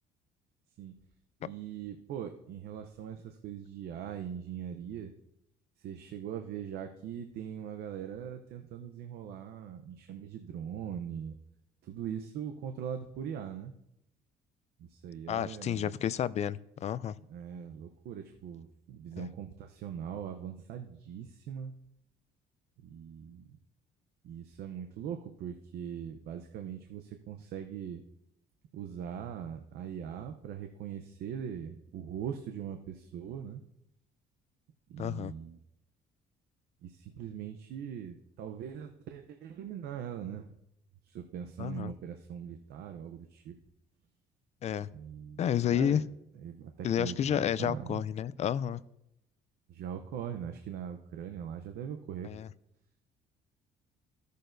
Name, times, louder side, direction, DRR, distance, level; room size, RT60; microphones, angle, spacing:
voice 1, 1.4-5.1 5.8-11.4 11.9-13.7 14.9-15.9 17.3-21.7 22.9-23.4 24.2-28.0 28.7-33.6 34.9-35.6 36.8-40.5 41.1-43.6 44.9-45.4 45.7-46.1 46.4-48.0 49.7-52.3, right 8 dB, 75° right, 6 dB, 0.7 m, -41 dB
voice 2, 15.3-17.2 19.2-19.3 35.0-35.3 41.6-41.9 44.6-44.9 45.4-46.0 46.8-48.8 52.2-52.5, left 9 dB, 40° left, 18 dB, 0.4 m, -30 dB
15.5 x 6.5 x 2.6 m, 0.82 s
cardioid pair, 110°, 17 cm